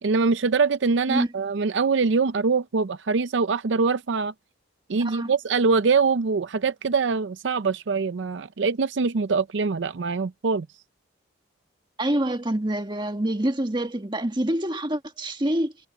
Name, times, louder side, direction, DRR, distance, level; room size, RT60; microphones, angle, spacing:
voice 1, 0.0-4.3 4.9-10.7, right 4 dB, 70° right, 0.5 m, -23 dB
voice 2, 12.0-15.7, right 1 dB, 25° right, 1.6 m, -26 dB
head